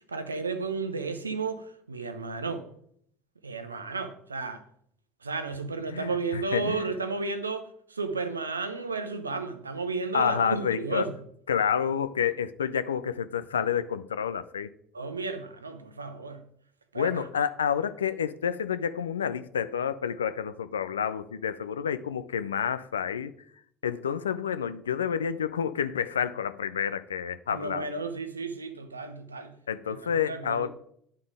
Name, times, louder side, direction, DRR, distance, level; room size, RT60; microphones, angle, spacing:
voice 1, 0.1-2.6 3.4-4.6 5.2-11.2 14.9-16.4 16.9-17.3 27.5-29.5 29.9-30.7, right 4 dB, 90° right, 0.6 m, -33 dB
voice 2, 5.9-6.9 10.1-11.0 11.5-14.7 17.0-23.3 23.8-28.0 29.7-30.7, left 8 dB, 85° left, 0.3 m, -29 dB
9.6 x 3.7 x 4.9 m
figure-of-eight pair, 60°, 0 cm